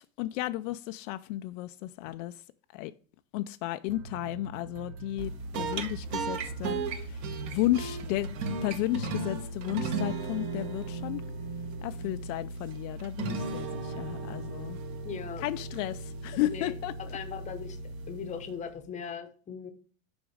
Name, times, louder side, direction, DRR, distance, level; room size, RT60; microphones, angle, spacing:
voice 1, 0.0-2.4 2.7-2.9 3.3-7.2 7.5-8.3 8.6-11.2 11.8-14.8 15.4-17.2, left 16 dB, 65° left, 0.5 m, -33 dB
sound 1, 3.9-9.6, right 6 dB, 85° right, 1.1 m, -45 dB
sound 2, 5.2-18.8, right 3 dB, 40° right, 1.1 m, -36 dB
voice 2, 15.0-15.4 16.5-16.7 17.1-17.8 18.1-19.7, left 7 dB, 15° left, 0.8 m, -39 dB
7.1 x 5.0 x 4.9 m
supercardioid pair, 155°, 42 cm